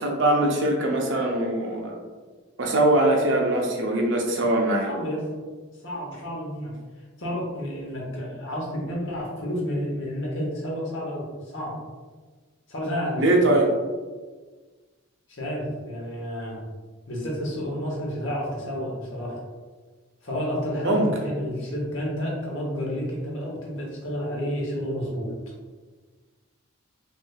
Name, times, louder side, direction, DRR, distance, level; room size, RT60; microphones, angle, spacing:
voice 1, 0.0-2.0 2.6-4.9 13.2-13.7 20.8-21.1, right 1 dB, 60° right, 1 dB, 0.6 m, -22 dB
voice 2, 4.8-5.3 5.8-6.7 7.2-11.8 12.7-13.4 15.3-16.6 17.1-19.4 20.2-25.3, equal, 65° left, -3 dB, 1.0 m, -30 dB
3.3 x 3.1 x 2.3 m, 1.4 s
head